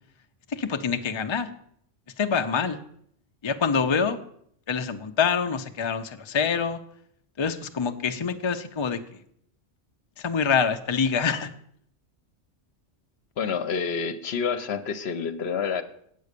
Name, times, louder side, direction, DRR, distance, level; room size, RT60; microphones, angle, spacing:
voice 1, 0.5-1.5 2.2-2.8 3.4-4.2 4.7-6.8 7.4-9.2 10.2-11.5, left 6 dB, 35° left, 7 dB, 0.5 m, -26 dB
voice 2, 13.4-15.8, left 6 dB, 65° left, 11 dB, 1.0 m, -28 dB
8.3 x 8.2 x 6.7 m, 0.68 s
omnidirectional pair, 1.2 m